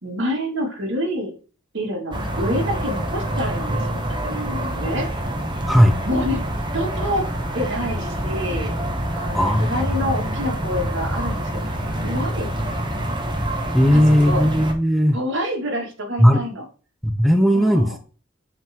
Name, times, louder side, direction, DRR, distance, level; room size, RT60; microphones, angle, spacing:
voice 1, 0.0-1.3 1.7-4.0 4.2-5.1 6.0-6.4 6.7-7.2 7.5-8.7 9.1-12.5 13.9-14.4 15.1-16.6 17.5-18.0, equal, 65° right, 0 dB, 2.6 m, -27 dB
sound 1, 2.1-14.7, right 1 dB, 25° right, 1.3 m, -26 dB
voice 2, 9.3-9.7 13.7-15.2 16.2-16.4 17.0-18.0, equal, ahead, 5 dB, 0.7 m, -16 dB
8.5 x 3.8 x 4.5 m, 0.37 s
head